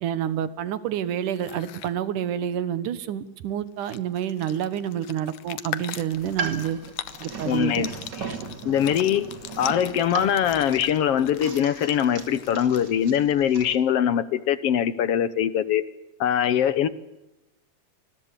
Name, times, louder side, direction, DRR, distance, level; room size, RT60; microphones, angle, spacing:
voice 1, 0.0-6.8 7.2-7.9, right 10 dB, 90° right, 14 dB, 2.8 m, -28 dB
sound 1, 1.3-1.9 3.4-3.5 3.7-13.2, left 12 dB, 85° left, 2.6 m, -41 dB
sound 2, 6.1-13.8, right 5 dB, 40° right, 2.4 m, -37 dB
voice 2, 7.5-7.9 8.2-8.3 8.6-15.8 16.2-16.9, left 9 dB, 60° left, 14 dB, 1.8 m, -22 dB
27.0 x 21.0 x 6.9 m, 0.96 s
omnidirectional pair, 3.5 m